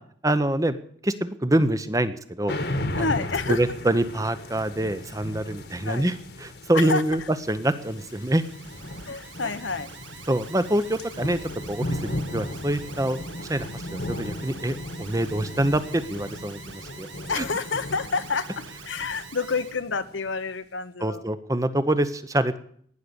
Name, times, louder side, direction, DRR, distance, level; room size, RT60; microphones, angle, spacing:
voice 1, 0.2-0.8 1.0-2.5 3.0-3.1 3.5-6.1 6.4-7.2 7.5-8.4 10.3-11.4 11.7-17.1 17.4-17.5 21.0-22.6, right 1 dB, 20° right, 12 dB, 0.8 m, -25 dB
sound 1, 2.5-20.3, left 1 dB, 60° left, 1.5 m, -36 dB
voice 2, 2.9-3.6 5.8-6.1 6.7-7.3 9.0-9.9 17.3-21.3, left 4 dB, 90° left, 11 dB, 1.1 m, -29 dB
Alarm, 7.5-19.8, right 7 dB, 90° right, 1.3 m, -46 dB
18.0 x 6.7 x 9.9 m, 0.62 s
head